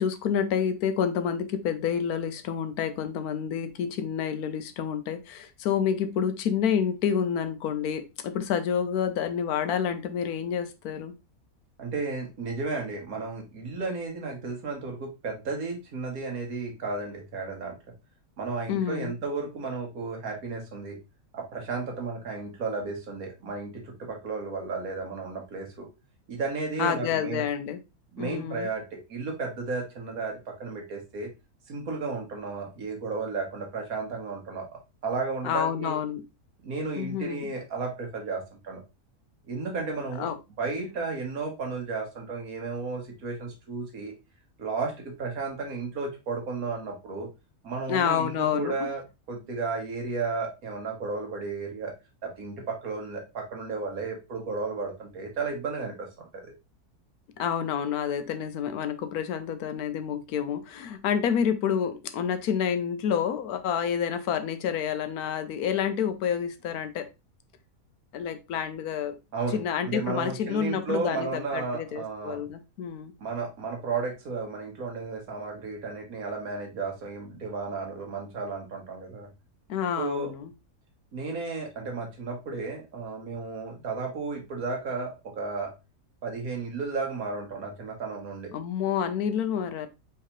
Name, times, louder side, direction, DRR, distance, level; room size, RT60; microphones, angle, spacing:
voice 1, 0.0-11.1 18.7-19.1 26.8-27.8 28.2-28.7 35.4-36.2 37.0-37.5 40.2-40.4 47.9-48.7 57.4-67.1 68.1-69.2 69.5-73.1 79.7-80.5 88.5-89.9, left 8 dB, 80° left, 1.1 m, -28 dB
voice 2, 11.8-17.8 18.4-21.0 21.3-25.9 26.3-27.4 28.1-31.3 31.7-36.0 36.6-38.8 39.5-40.3 40.6-44.1 44.6-47.3 47.6-49.0 49.3-51.9 52.2-56.5 69.3-72.4 73.2-79.3 80.0-80.3 81.1-85.7 86.2-88.5, right 4 dB, 70° right, 1.7 m, -33 dB
4.7 x 3.5 x 2.9 m
omnidirectional pair, 1.6 m